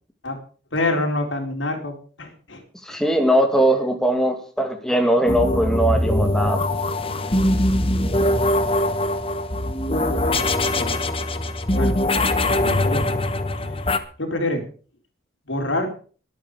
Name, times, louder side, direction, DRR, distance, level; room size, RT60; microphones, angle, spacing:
voice 1, 0.7-2.6 2.9-3.0 10.2-10.5 10.8-11.0 11.7-11.9 12.5-13.0 14.2-14.6 15.5-15.9, left 2 dB, 80° left, 3 dB, 4.3 m, -26 dB
voice 2, 2.8-6.6, right 1 dB, 5° left, 4 dB, 2.1 m, -20 dB
sound 1, 5.3-14.0, left 1 dB, 30° left, 1.3 m, -22 dB
23.5 x 8.9 x 5.0 m, 0.40 s
head